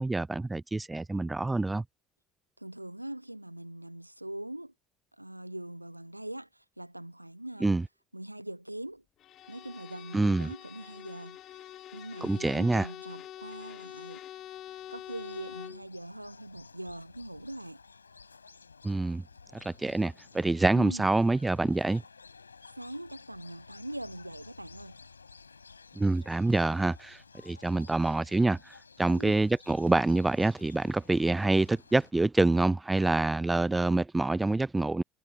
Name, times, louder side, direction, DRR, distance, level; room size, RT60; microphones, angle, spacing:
voice 1, 0.0-1.8 7.6-7.8 10.1-10.5 12.2-12.9 18.8-19.2 19.6-22.0 26.0-28.7 29.0-35.0, right 2 dB, 15° right, 0.4 m, -26 dB
voice 2, 2.6-4.7 5.2-7.8 8.1-9.0 9.5-14.2 14.9-17.8 20.7-21.1 22.7-25.0 29.1-29.3, right 1 dB, 90° right, 1.0 m, -42 dB
Bowed string instrument, 9.2-15.9, left 12 dB, 45° left, 1.6 m, -46 dB
sound 1, 14.5-32.1, left 5 dB, 80° left, 5.8 m, -54 dB
figure-of-eight pair, 60°, 0 cm